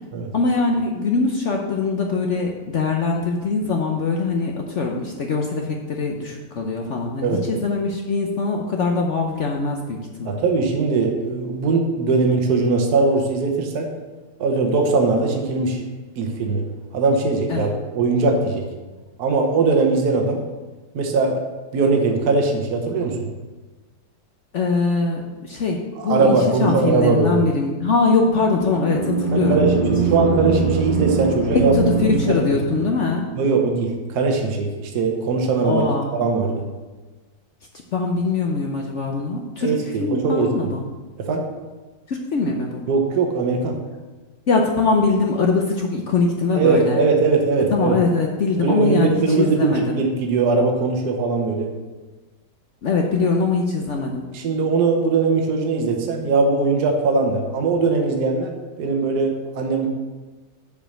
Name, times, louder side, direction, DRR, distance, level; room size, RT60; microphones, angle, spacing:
voice 1, 0.3-10.4 17.5-17.7 24.5-29.6 30.1-30.2 31.5-33.3 35.6-36.1 37.9-39.7 40.0-40.8 42.1-42.9 44.5-47.0 47.7-50.0 52.8-54.2, left 4 dB, 65° left, 1 dB, 0.7 m, -22 dB
voice 2, 10.2-13.9 14.4-15.8 16.2-16.6 16.9-18.6 19.2-20.4 20.9-21.4 21.7-23.2 26.0-27.4 29.3-31.7 32.1-32.4 33.3-35.8 36.1-36.6 39.6-40.7 41.2-41.5 42.9-43.8 46.5-48.0 48.6-51.7 54.3-59.9, right 4 dB, 60° right, 2 dB, 1.5 m, -20 dB
sound 1, 28.2-33.2, right 4 dB, 30° right, 1.5 m, -23 dB
7.0 x 5.0 x 6.4 m, 1.3 s
omnidirectional pair, 2.0 m